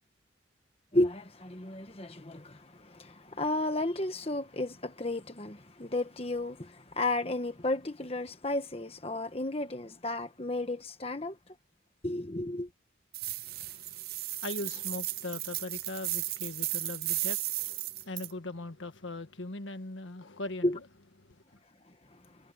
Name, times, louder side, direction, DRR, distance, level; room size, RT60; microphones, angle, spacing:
voice 1, 0.9-11.4 12.0-12.7 20.6-20.8 21.9-22.2, left 2 dB, 30° left, 1.4 m, -33 dB
sound 1, 13.1-18.3, right 16 dB, 50° right, 0.6 m, -35 dB
voice 2, 13.4-20.8 21.2-21.6, left 2 dB, 80° left, 1.6 m, -40 dB
head